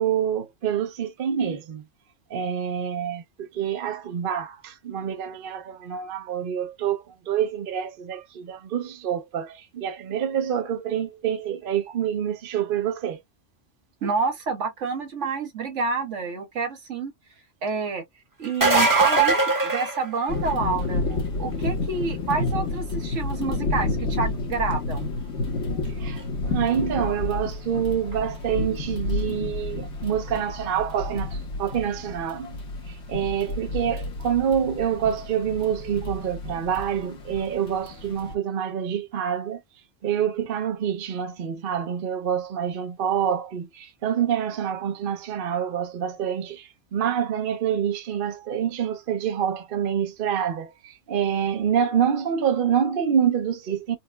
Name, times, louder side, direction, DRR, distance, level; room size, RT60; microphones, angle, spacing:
voice 1, 0.0-1.8 2.3-13.2 22.4-22.5 25.7-32.6 32.9-39.6 40.0-54.0, right 8 dB, 55° right, 0.7 m, -27 dB
voice 2, 14.0-17.1 17.6-18.0 18.4-21.0 21.4-25.1, right 4 dB, 75° right, 1.4 m, -28 dB
sound 1, 18.4-20.7 26.2-26.3 28.1-28.2, right 3 dB, 20° right, 0.8 m, -21 dB
sound 2, 20.3-38.4, left 3 dB, 65° left, 1.4 m, -30 dB
4.3 x 2.2 x 2.2 m
omnidirectional pair, 1.3 m